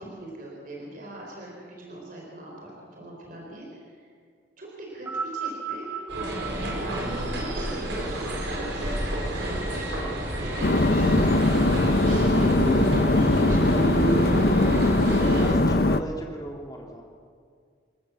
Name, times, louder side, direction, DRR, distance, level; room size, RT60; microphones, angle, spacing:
voice 1, 0.0-4.1 4.6-5.9 6.6-8.9 9.3-10.1 10.6-11.4 11.7-15.3, right 1 dB, 45° right, -2 dB, 4.3 m, -41 dB
sound 1, 4.9-9.5 10.4-10.5, right 6 dB, 10° right, 1.3 m, -37 dB
sound 2, 6.1-15.5, right 1 dB, 75° right, 4.4 m, -28 dB
sound 3, 10.6-16.0, left 2 dB, 55° left, 0.8 m, -21 dB
voice 2, 15.2-17.0, right 1 dB, 20° left, 0 dB, 3.1 m, -36 dB
28.0 x 14.0 x 7.2 m, 2.1 s
head